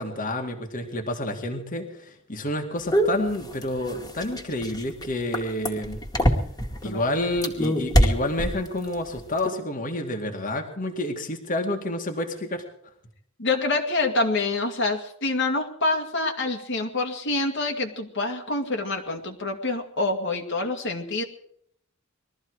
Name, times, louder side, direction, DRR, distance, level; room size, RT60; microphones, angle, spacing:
voice 1, 0.0-6.3 6.8-12.6, left 1 dB, 40° left, 4 dB, 2.1 m, -29 dB
sound 1, 2.9-6.8 7.3-8.9 9.2-9.5, equal, 20° left, 2.3 m, -23 dB
voice 2, 13.4-21.2, left 2 dB, 60° left, 3 dB, 2.1 m, -26 dB
21.5 x 14.0 x 4.9 m, 0.69 s
head